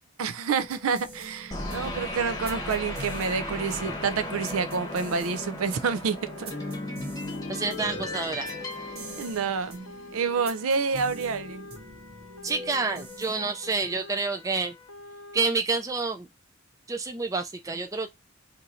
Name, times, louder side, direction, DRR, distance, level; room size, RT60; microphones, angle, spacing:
voice 1, 0.2-6.5 9.2-9.7 10.1-11.7, right 5 dB, 75° right, 0.4 m, -28 dB
sound 1, 0.6-14.0, right 1 dB, 45° right, 1.1 m, -45 dB
sound 2, 1.5-10.1, left 1 dB, 15° left, 0.9 m, -36 dB
sound 3, 3.0-15.5, left 3 dB, 90° left, 0.7 m, -47 dB
voice 2, 7.5-8.5 12.4-14.7 15.3-16.3 16.9-18.1, right 3 dB, 15° right, 0.3 m, -28 dB
2.7 x 2.6 x 4.1 m
head